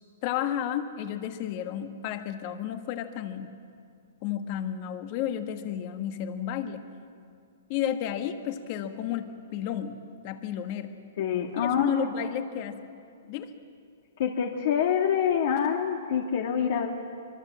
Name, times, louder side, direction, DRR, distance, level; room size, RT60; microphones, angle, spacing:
voice 1, 0.2-3.5 4.2-6.8 7.7-10.0 10.2-11.0 11.5-12.9 13.3-13.5, left 9 dB, 35° left, 8 dB, 1.4 m, -32 dB
voice 2, 11.2-11.9 12.2-12.4 14.2-16.9, left 8 dB, 50° left, 2 dB, 1.7 m, -26 dB
24.5 x 23.5 x 7.5 m, 2.4 s
hypercardioid pair, 165°, 0 cm